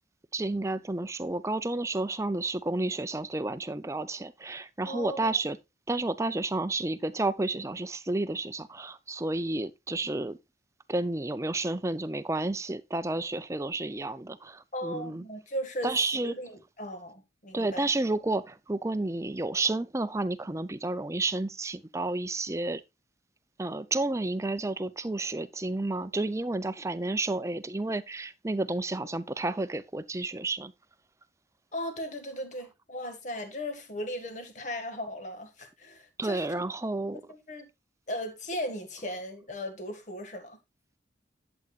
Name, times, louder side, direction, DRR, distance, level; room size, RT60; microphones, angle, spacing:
voice 1, 0.3-5.6 5.9-10.4 10.9-15.2 15.8-16.3 17.5-22.8 23.6-30.7 36.2-37.2, right 2 dB, 15° right, 0.5 m, -31 dB
voice 2, 4.8-5.4 14.7-16.0 16.2-17.9 31.7-36.6 37.1-37.7 38.1-40.6, equal, 45° left, 1.9 m, -37 dB
11.5 x 8.0 x 2.4 m
head